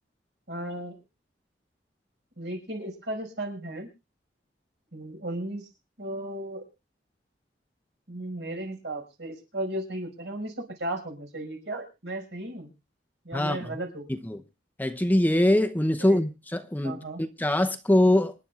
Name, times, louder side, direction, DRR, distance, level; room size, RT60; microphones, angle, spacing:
voice 1, 0.5-1.0 2.4-3.9 4.9-5.7 6.0-6.7 8.1-12.7 13.2-14.1 16.0-16.2 16.8-17.2, right 1 dB, 70° right, 5.6 m, -35 dB
voice 2, 13.3-13.8 14.1-14.4 14.8-18.3, left 1 dB, 10° left, 0.7 m, -23 dB
26.5 x 11.0 x 2.4 m
head